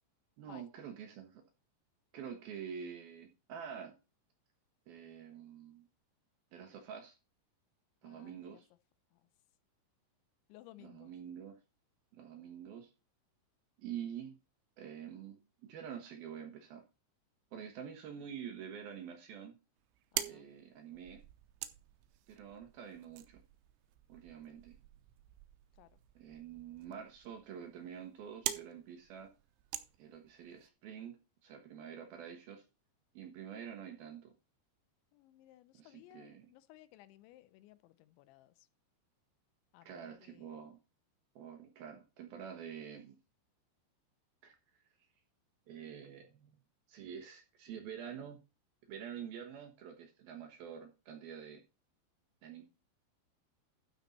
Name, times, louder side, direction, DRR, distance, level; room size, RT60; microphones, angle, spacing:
voice 1, 0.4-1.4 2.1-3.9 4.9-5.9 6.5-7.2 8.0-8.7 10.8-11.6 12.1-12.9 13.8-14.4 14.8-16.8 17.5-19.5 20.3-21.2 22.3-23.4 24.1-24.7 26.1-29.3 30.0-31.2 31.4-32.6 33.1-34.3 35.7-36.5 39.8-40.8 41.4-43.2 44.4-44.6 45.7-46.5 46.9-48.4 48.9-51.6 52.4-52.6, right 8 dB, 65° right, 2.7 m, -47 dB
voice 2, 8.0-8.6 9.1-9.2 10.5-11.1 20.1-20.5 25.7-25.9 35.1-38.7 39.7-40.6, left 15 dB, 80° left, 2.8 m, -59 dB
sound 1, 19.8-30.7, right 14 dB, 85° right, 3.2 m, -46 dB
12.5 x 5.6 x 4.2 m
omnidirectional pair, 5.5 m